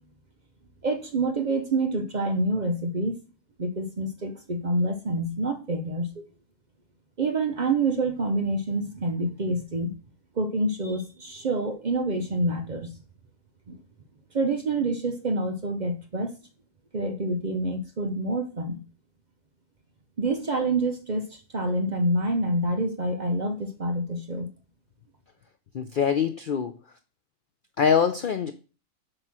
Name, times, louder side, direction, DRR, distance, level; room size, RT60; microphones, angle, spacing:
voice 1, 0.8-3.2 3.6-6.2 7.2-9.9 10.4-12.9 13.7-13.8 14.3-16.3 16.9-18.8 20.2-24.5, right 2 dB, 45° right, 0.6 m, -27 dB
voice 2, 25.7-26.7 27.8-28.5, left 7 dB, 85° left, 0.4 m, -23 dB
7.7 x 3.0 x 5.9 m
omnidirectional pair, 1.5 m